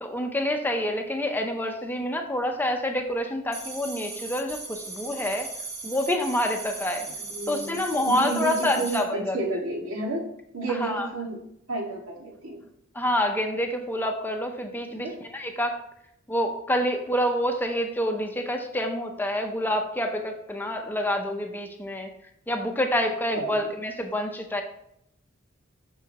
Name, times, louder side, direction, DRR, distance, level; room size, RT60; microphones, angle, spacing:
voice 1, 0.0-5.5 5.8-7.1 7.5-9.4 10.8-11.1 12.9-15.1 15.3-15.8 16.3-22.1 22.5-24.6, left 1 dB, 10° left, 4 dB, 0.6 m, -27 dB
sound 1, 3.5-9.0, right 3 dB, 45° right, 2.8 m, -38 dB
voice 2, 7.3-10.2 10.5-11.4 11.7-12.6 15.0-15.1 23.3-23.7, right 2 dB, 90° right, -2 dB, 1.8 m, -31 dB
6.8 x 6.2 x 2.9 m, 0.74 s
head